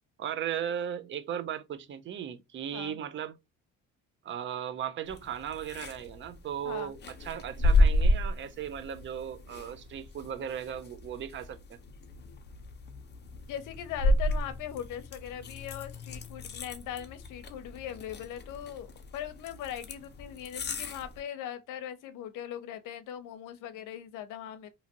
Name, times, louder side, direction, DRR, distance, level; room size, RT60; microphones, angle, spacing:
voice 1, 0.2-3.4 4.2-11.8, right 9 dB, 40° right, 0.5 m, -37 dB
sound 1, 5.1-21.2, left 1 dB, 35° left, 0.7 m, -32 dB
voice 2, 13.5-24.7, left 10 dB, 75° left, 0.7 m, -40 dB
2.8 x 2.5 x 2.7 m
cardioid pair, 100°, 32 cm